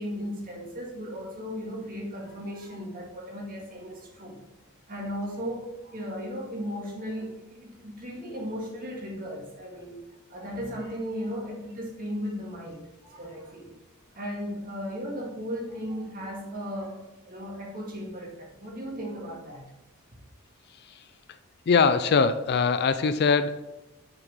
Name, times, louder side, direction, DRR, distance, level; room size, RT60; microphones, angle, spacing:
voice 1, 0.0-4.4 4.9-13.8 14.1-19.6, equal, 40° right, -2 dB, 2.2 m, -36 dB
voice 2, 21.7-23.6, left 5 dB, 50° left, 12 dB, 0.4 m, -22 dB
6.4 x 6.1 x 3.7 m, 1.0 s
head